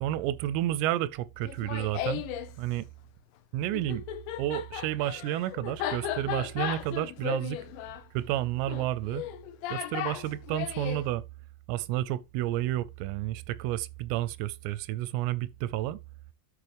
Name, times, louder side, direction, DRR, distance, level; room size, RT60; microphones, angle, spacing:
voice 1, 0.0-2.2 2.6-2.9 3.5-4.0 4.4-7.6 8.1-9.2 9.7-11.2 11.7-16.0, right 14 dB, 90° right, 3.2 m, -31 dB
Laughter, 1.4-2.5 3.7-11.0, left 11 dB, 80° left, 2.8 m, -35 dB
13.0 x 4.6 x 3.4 m
omnidirectional pair, 5.7 m